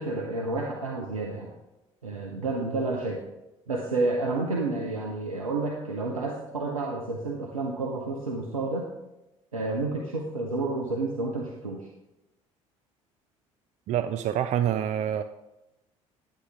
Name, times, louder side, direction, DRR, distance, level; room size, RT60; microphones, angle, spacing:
voice 1, 0.0-1.5 2.0-3.2 3.7-8.9 9.5-11.9, right 3 dB, 85° right, 0 dB, 0.7 m, -30 dB
voice 2, 13.9-15.2, right 10 dB, 40° right, 10 dB, 0.4 m, -26 dB
9.6 x 8.3 x 3.5 m, 0.95 s
figure-of-eight pair, 55°, 17 cm